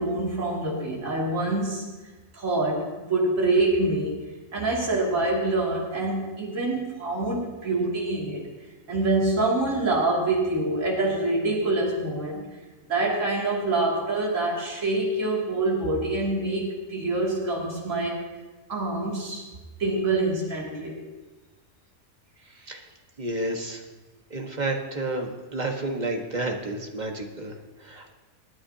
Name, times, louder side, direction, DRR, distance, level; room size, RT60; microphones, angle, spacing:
voice 1, 0.0-1.8 2.3-4.1 4.5-8.4 8.9-12.6 12.9-18.2 18.7-19.4 19.8-21.0, right 2 dB, 65° right, -4 dB, 3.0 m, -26 dB
voice 2, 22.5-22.9 23.2-23.8 24.3-28.1, right 2 dB, 30° right, 2 dB, 1.5 m, -31 dB
28.5 x 9.9 x 2.8 m, 1.2 s
omnidirectional pair, 1.4 m